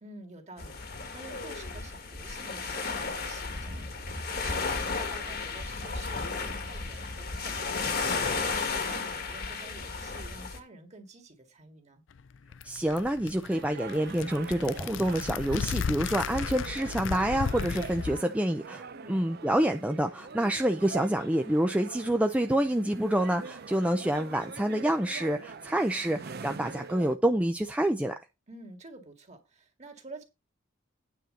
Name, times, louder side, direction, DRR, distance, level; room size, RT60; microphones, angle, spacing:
voice 1, 0.0-12.0 18.9-19.3 28.5-30.2, right 2 dB, 35° right, 2.0 m, -49 dB
sound 1, 0.6-10.6, left 4 dB, 50° left, 1.6 m, -33 dB
sound 2, 12.2-18.2, left 6 dB, 70° left, 0.4 m, -35 dB
voice 2, 12.6-28.1, right 1 dB, 5° right, 0.5 m, -27 dB
sound 3, 13.5-27.2, right 5 dB, 55° right, 0.6 m, -44 dB
9.4 x 4.4 x 6.5 m
head